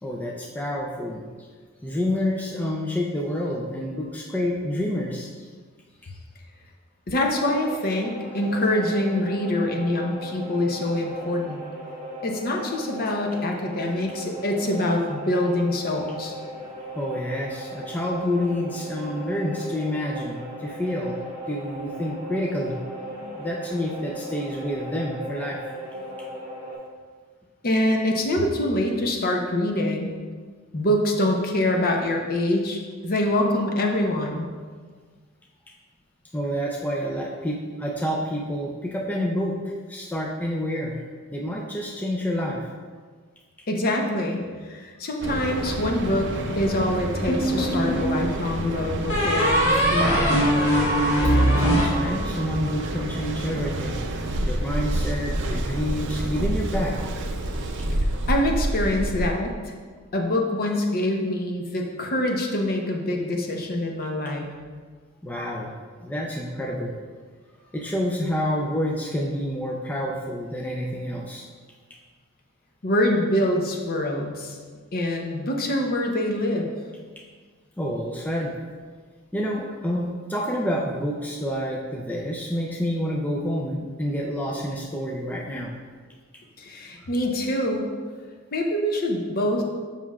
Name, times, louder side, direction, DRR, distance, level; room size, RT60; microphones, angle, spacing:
voice 1, 0.0-1.3 1.8-5.5 17.0-21.2 21.5-22.8 23.4-25.6 36.3-41.0 41.3-42.7 51.4-54.0 54.4-57.0 65.2-65.7 66.0-66.9 67.7-71.4 77.8-78.5 79.3-85.8, equal, 5° left, -2 dB, 0.4 m, -28 dB
voice 2, 7.1-11.6 12.2-16.3 23.1-23.2 27.6-30.2 30.7-34.5 43.7-50.5 58.0-59.7 60.1-64.5 72.8-74.6 74.9-76.7 86.6-87.9 88.5-89.6, left 1 dB, 45° left, 1 dB, 0.7 m, -25 dB
sound 1, 7.4-26.7, equal, 35° right, 1.4 m, -37 dB
Mechanical fan, 45.2-59.3, right 1 dB, 55° right, 0.5 m, -29 dB
sound 2, 47.3-48.1 49.1-52.6, equal, 60° left, 1.8 m, -21 dB
7.4 x 5.7 x 2.4 m, 1.5 s
head